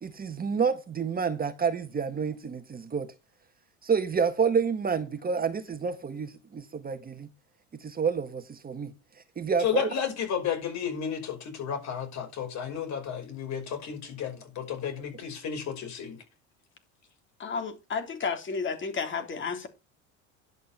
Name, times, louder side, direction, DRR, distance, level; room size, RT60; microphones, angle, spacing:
voice 1, 0.0-3.1 3.8-7.3 7.8-8.9 9.4-9.9, right 6 dB, 25° right, 1.5 m, -29 dB
voice 2, 9.6-16.2, left 8 dB, 50° left, 5.5 m, -32 dB
voice 3, 17.4-19.7, left 5 dB, 35° left, 3.4 m, -32 dB
11.0 x 8.3 x 4.3 m
supercardioid pair, 100°, 35 cm